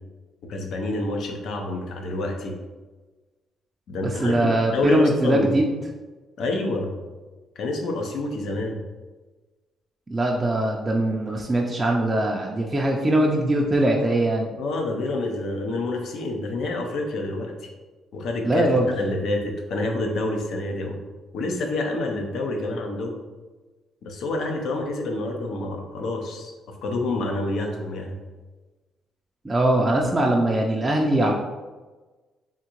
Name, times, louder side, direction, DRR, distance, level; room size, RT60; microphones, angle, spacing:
voice 1, 0.5-2.5 3.9-5.5 6.4-6.9 7.6-8.8 14.6-17.5 18.1-21.0 21.3-23.2 24.0-26.5 26.8-28.2, left 2 dB, 75° left, 2 dB, 0.6 m, -28 dB
voice 2, 4.0-5.7 10.1-14.5 18.4-18.9 29.4-31.3, right 1 dB, 20° right, -1 dB, 0.4 m, -21 dB
3.6 x 2.7 x 2.9 m, 1.3 s
cardioid pair, 90°, 0 cm